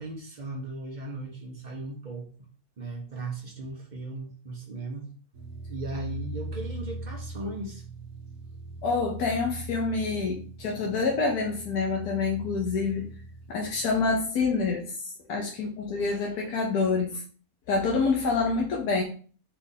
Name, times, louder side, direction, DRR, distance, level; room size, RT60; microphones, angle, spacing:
voice 1, 0.0-2.5 2.8-5.1 5.7-7.8, right 2 dB, 40° right, 1 dB, 0.8 m, -37 dB
sound 1, 5.3-13.9, right 2 dB, 60° right, 1.2 m, -40 dB
voice 2, 8.8-13.1 13.5-17.2 17.7-19.0, left 4 dB, 85° left, -1 dB, 1.3 m, -27 dB
4.5 x 2.5 x 4.0 m, 0.41 s
omnidirectional pair, 1.6 m